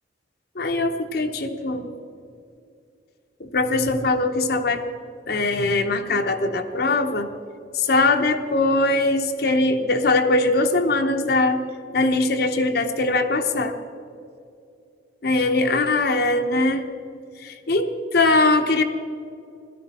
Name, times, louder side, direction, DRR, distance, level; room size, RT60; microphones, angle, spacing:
voice 1, 0.6-1.9 3.4-4.8 5.3-7.3 7.7-11.6 11.9-13.8 15.2-16.9 17.4-18.8, left 2 dB, 55° left, 5 dB, 1.0 m, -21 dB
17.0 x 13.0 x 4.3 m, 2.5 s
head